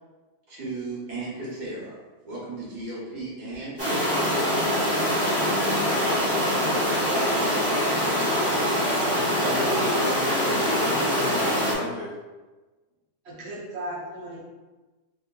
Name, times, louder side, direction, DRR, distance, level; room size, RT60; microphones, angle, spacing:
voice 1, 0.5-2.0 2.2-4.9 5.4-6.5 7.1-7.9, right 2 dB, 80° right, -7 dB, 1.6 m, -36 dB
sound 1, 3.8-11.7, equal, 10° right, 0.7 m, -24 dB
voice 2, 9.1-12.2, left 3 dB, 80° left, 0 dB, 1.1 m, -34 dB
voice 3, 13.2-14.4, right 1 dB, 55° right, -4 dB, 0.7 m, -36 dB
3.4 x 2.7 x 2.3 m, 1.2 s
omnidirectional pair, 1.7 m